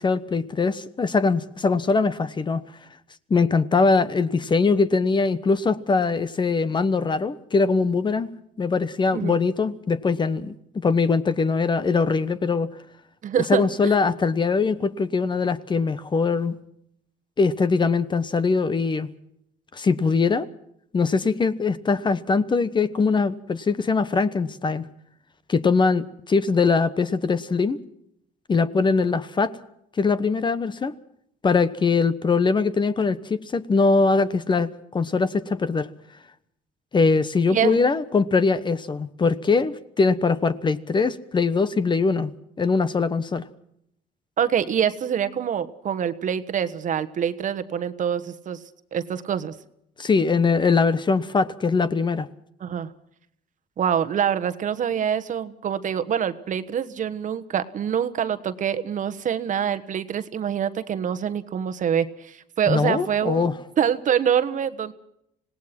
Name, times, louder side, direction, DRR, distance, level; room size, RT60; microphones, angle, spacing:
voice 1, 0.0-2.6 3.3-8.3 8.6-12.7 13.5-16.5 17.4-19.1 19.7-20.5 20.9-24.8 25.5-27.8 28.5-29.5 30.0-30.9 31.4-35.9 36.9-42.3 42.6-43.4 50.0-52.3 62.7-63.6, left 4 dB, 25° left, 14 dB, 1.1 m, -22 dB
voice 2, 13.2-14.0 37.5-37.8 44.4-48.6 48.9-49.5 52.6-52.9 53.8-63.5 63.8-64.9, right 8 dB, 50° right, 11 dB, 1.3 m, -25 dB
26.0 x 18.5 x 6.0 m, 0.74 s
cardioid pair, 110°, 17 cm